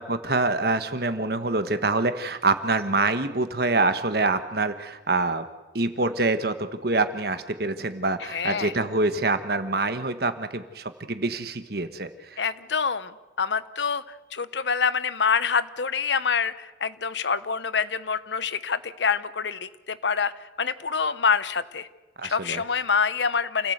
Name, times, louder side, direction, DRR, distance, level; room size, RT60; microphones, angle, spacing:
voice 1, 0.0-5.5 5.7-12.4 22.2-22.6, right 3 dB, 55° right, 10 dB, 1.4 m, -26 dB
voice 2, 8.3-8.7 12.4-13.1 13.4-20.3 20.6-21.9 22.2-23.7, left 6 dB, 75° left, 15 dB, 0.9 m, -26 dB
28.5 x 16.5 x 8.0 m, 1.2 s
head